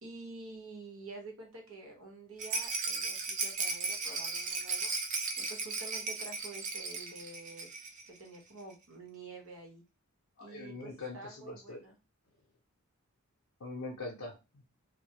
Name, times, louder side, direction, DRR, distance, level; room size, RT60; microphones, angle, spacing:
voice 1, 0.0-4.9 5.4-7.7 8.1-9.8 10.4-12.0, right 3 dB, 70° right, 1 dB, 0.9 m, -48 dB
Rattle, 2.4-8.1 8.3-8.4 8.7-8.8, right 4 dB, 35° right, 0.4 m, -36 dB
voice 2, 10.4-11.8 13.6-14.6, left 3 dB, 70° left, -2 dB, 0.6 m, -43 dB
2.1 x 2.1 x 2.8 m, 0.27 s
head